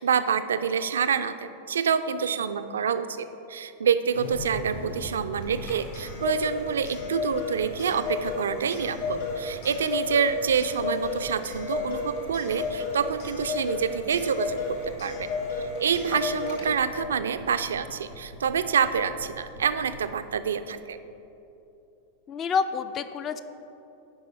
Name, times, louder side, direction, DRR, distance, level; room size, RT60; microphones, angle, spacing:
voice 1, 0.0-15.3 15.6-21.0, right 7 dB, 65° right, 11 dB, 0.3 m, -27 dB
sound 1, 4.1-7.0 7.3-7.8 8.0-9.8 10.0-10.5 10.8-11.2 11.5-12.0 12.3-12.7 13.0-13.4 13.7-14.2 14.4-14.9 15.2-15.6 15.9-16.3 16.6-17.1 17.4-17.8 18.1-18.5 18.8-19.3 19.5-20.0, equal, 85° left, 1.3 m, -40 dB
Clock, 5.4-17.0, left 4 dB, 55° left, 1.8 m, -33 dB
voice 2, 22.3-23.4, left 6 dB, 30° left, 11 dB, 0.4 m, -28 dB
9.7 x 5.1 x 4.6 m, 2.9 s
figure-of-eight pair, 90°, 0 cm